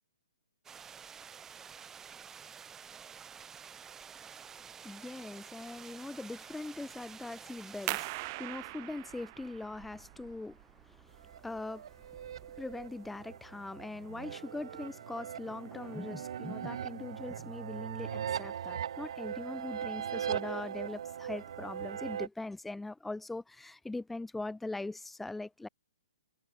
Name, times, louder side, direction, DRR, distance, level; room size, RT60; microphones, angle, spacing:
sound 1, 0.6-8.1, right 7 dB, 10° right, 1.7 m, -50 dB
voice 1, 4.8-25.7, left 2 dB, 5° left, 1.5 m, -42 dB
sound 2, 7.9-13.2, right 25 dB, 35° right, 1.8 m, -42 dB
sound 3, 11.2-22.3, right 9 dB, 60° right, 1.4 m, -40 dB
hypercardioid pair, 140°, 3 cm